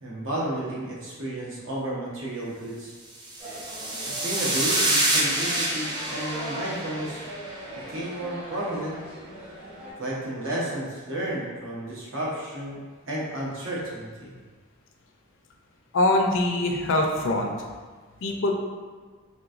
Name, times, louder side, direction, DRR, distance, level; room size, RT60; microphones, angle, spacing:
voice 1, 0.0-2.9 4.1-7.3 7.9-9.0 10.0-12.8 13.1-14.3, right 1 dB, 65° right, -5 dB, 0.9 m, -32 dB
sound 1, 3.2-7.7, right 1 dB, 20° right, 0.4 m, -27 dB
sound 2, 3.4-9.9, equal, 40° right, 1.3 m, -40 dB
voice 2, 15.9-17.5 18.2-18.5, left 2 dB, 60° left, 2 dB, 0.4 m, -23 dB
3.2 x 2.9 x 2.5 m, 1.4 s
head